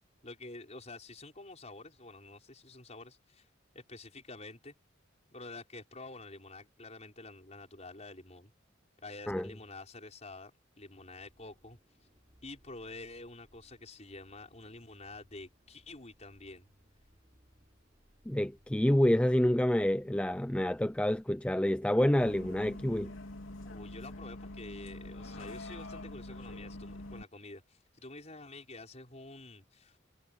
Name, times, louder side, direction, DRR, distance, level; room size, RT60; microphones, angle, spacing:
voice 1, 0.2-3.5 3.7-4.7 5.3-8.5 9.0-10.5 10.8-11.8 12.4-16.7 23.6-30.2, left 2 dB, 35° left, 5.9 m, -48 dB
sound 1, 11.1-21.2, equal, 30° right, 7.8 m, -66 dB
voice 2, 18.3-23.1, left 1 dB, 5° left, 0.4 m, -28 dB
Bus, 22.2-27.2, left 1 dB, 85° left, 3.0 m, -45 dB
head